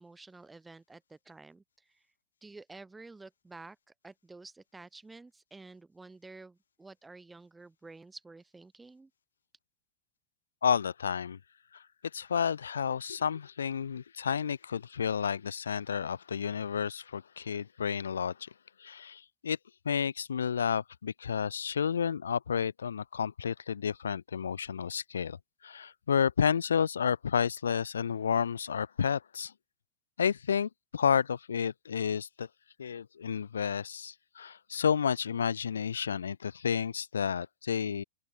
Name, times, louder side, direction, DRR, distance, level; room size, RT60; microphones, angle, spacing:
voice 1, 0.0-2.0 2.4-3.8 4.0-9.1, right 3 dB, 10° right, 5.0 m, -51 dB
voice 2, 10.6-11.4 11.7-11.8 12.1-18.5 18.8-19.6 19.9-25.4 25.6-29.5 30.2-32.5 32.8-38.0, left 7 dB, 70° left, 1.8 m, -31 dB
open air
figure-of-eight pair, 90°, 0 cm